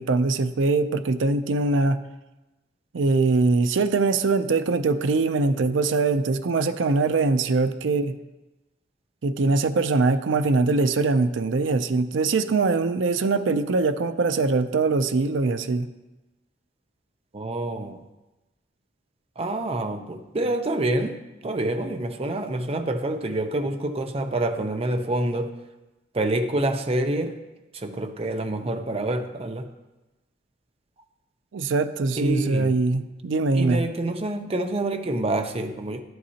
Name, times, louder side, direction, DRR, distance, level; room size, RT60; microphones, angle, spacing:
voice 1, 0.0-2.0 2.9-8.2 9.2-15.9 31.5-33.8, right 3 dB, 80° right, 10 dB, 0.5 m, -22 dB
voice 2, 17.3-18.0 19.4-21.2 21.4-25.5 26.1-27.4 27.7-29.7 32.2-32.8 33.5-36.0, right 2 dB, 30° right, 6 dB, 0.6 m, -27 dB
11.0 x 7.7 x 2.8 m, 1.0 s
head